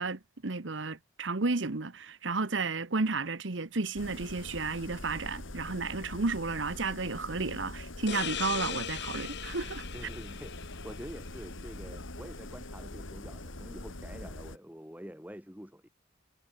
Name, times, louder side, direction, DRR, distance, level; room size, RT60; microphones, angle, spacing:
voice 1, 0.0-9.9, right 3 dB, 70° right, 1.2 m, -32 dB
sound 1, 4.0-14.6, left 2 dB, 90° left, 2.9 m, -43 dB
sound 2, 8.1-11.5, left 8 dB, 60° left, 4.1 m, -39 dB
voice 2, 9.9-15.9, equal, 10° right, 3.1 m, -47 dB
head